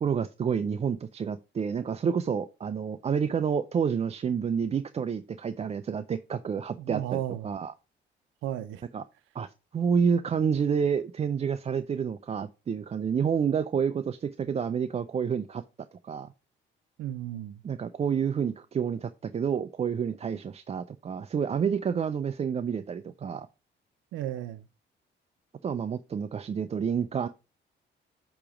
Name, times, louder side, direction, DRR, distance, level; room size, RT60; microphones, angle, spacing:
voice 1, 0.0-7.7 8.9-9.0 9.4-9.5 9.7-15.6 16.0-16.3 17.6-23.5 25.6-27.3, right 7 dB, 30° right, 0.4 m, -29 dB
voice 2, 6.8-7.5 8.4-8.8 17.0-17.6 24.1-24.7, right 12 dB, 85° right, 0.5 m, -34 dB
8.6 x 3.0 x 4.9 m
cardioid pair, 90°, 20 cm